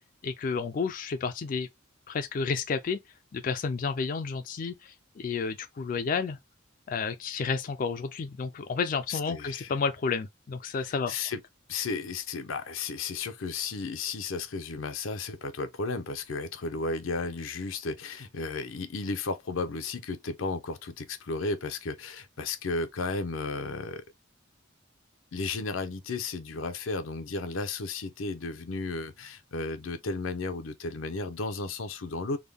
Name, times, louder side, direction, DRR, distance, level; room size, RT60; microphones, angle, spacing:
voice 1, 0.2-1.7 2.1-3.0 3.3-6.4 6.9-11.1, left 5 dB, 45° left, 0.3 m, -31 dB
voice 2, 9.1-9.7 10.8-11.4 11.7-24.0 25.3-32.4, left 3 dB, 90° left, 0.6 m, -34 dB
3.6 x 2.2 x 3.3 m
head